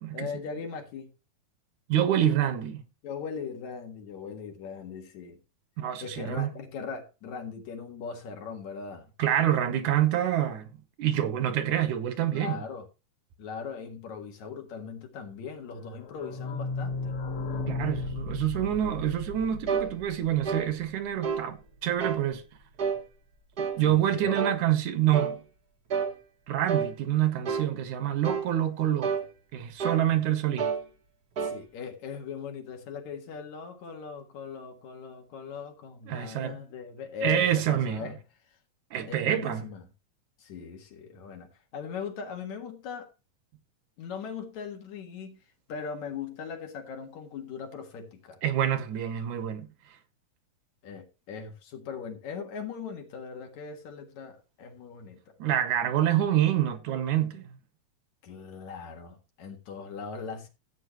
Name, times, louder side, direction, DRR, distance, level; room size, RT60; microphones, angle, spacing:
voice 1, 0.1-1.1 3.0-5.4 6.0-9.1 12.3-12.9 13.4-17.2 23.8-24.4 31.4-38.2 39.1-39.8 40.4-43.1 44.0-45.4 45.7-48.4 50.8-55.3 58.2-60.5, left 6 dB, 70° left, 3.0 m, -39 dB
voice 2, 1.9-2.8 5.8-6.5 9.2-12.7 17.7-22.4 23.6-25.4 26.5-29.2 29.5-30.7 36.1-36.6 37.2-38.1 38.9-39.6 48.4-49.7 55.4-57.4, right 11 dB, 80° right, 2.5 m, -27 dB
sound 1, 15.8-21.4 21.7-21.8 21.9-22.0 22.3-22.4, left 3 dB, 50° left, 2.4 m, -35 dB
sound 2, 19.7-19.9 20.4-20.7 21.2-21.5 22.0-22.2 22.8-23.0 23.6-23.8 24.3-24.6 25.1-25.4 25.9-26.1 26.7-26.9 27.4-27.7 28.2-28.5 29.0-29.3 29.8-30.1 30.6-30.8 31.4-31.6, right 6 dB, 60° right, 1.0 m, -29 dB
14.5 x 8.4 x 3.0 m
omnidirectional pair, 3.4 m